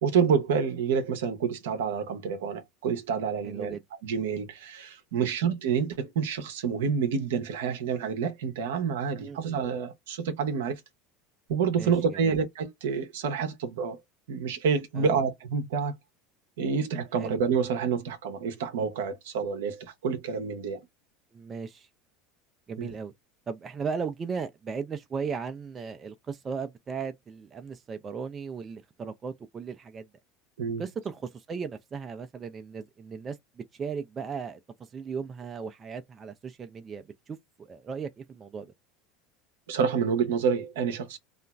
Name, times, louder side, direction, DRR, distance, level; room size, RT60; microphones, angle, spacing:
voice 1, 0.0-3.8 4.0-10.8 11.5-14.0 14.3-16.0 16.6-20.8 22.8-22.9 30.6-30.8 39.7-41.2, right 6 dB, 75° right, 0.7 m, -28 dB
voice 2, 3.4-3.8 5.4-5.5 9.2-9.6 11.7-12.3 14.9-15.1 17.2-17.4 21.3-21.9 22.7-23.1 23.5-30.1 30.8-34.6 34.9-38.7, right 5 dB, 30° right, 0.4 m, -37 dB
2.8 x 2.4 x 2.2 m
hypercardioid pair, 80°, 0 cm